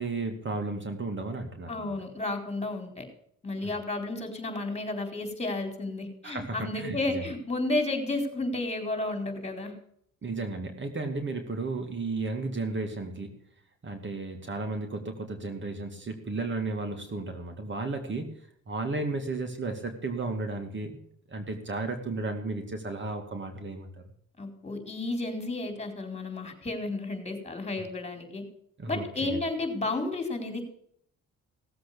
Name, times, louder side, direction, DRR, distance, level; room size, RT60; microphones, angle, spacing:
voice 1, 0.0-1.9 3.6-3.7 6.2-7.2 10.2-13.4 13.8-18.3 18.7-23.9 28.8-29.4, right 3 dB, 40° right, 5 dB, 2.3 m, -34 dB
voice 2, 1.7-3.0 3.4-9.8 24.4-28.4 28.9-30.6, left 2 dB, 20° left, 5 dB, 4.4 m, -32 dB
17.5 x 7.8 x 6.9 m, 0.67 s
cardioid pair, 90°, 30 cm